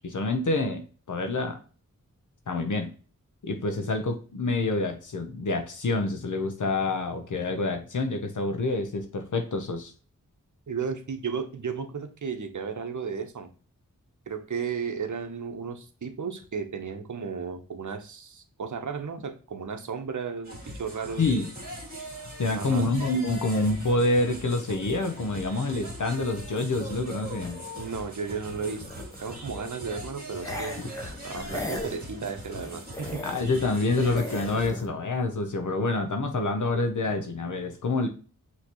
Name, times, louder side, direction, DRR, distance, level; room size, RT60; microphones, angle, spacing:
voice 1, 0.0-1.6 2.5-2.9 3.4-9.9 21.2-21.5 22.4-27.6 33.2-38.1, left 2 dB, 65° left, 6 dB, 0.8 m, -27 dB
voice 2, 10.7-13.5 14.3-21.3 22.5-22.9 27.8-28.9 29.2-30.9 31.2-33.2, right 6 dB, 60° right, 7 dB, 0.8 m, -34 dB
sound 1, 20.4-34.7, right 1 dB, 30° right, 2.0 m, -40 dB
sound 2, 23.8-28.0 28.3-29.6 30.4-33.9 34.2-34.9, left 1 dB, 10° left, 1.0 m, -40 dB
5.7 x 3.0 x 3.0 m, 0.38 s
wide cardioid pair, 55°, 33 cm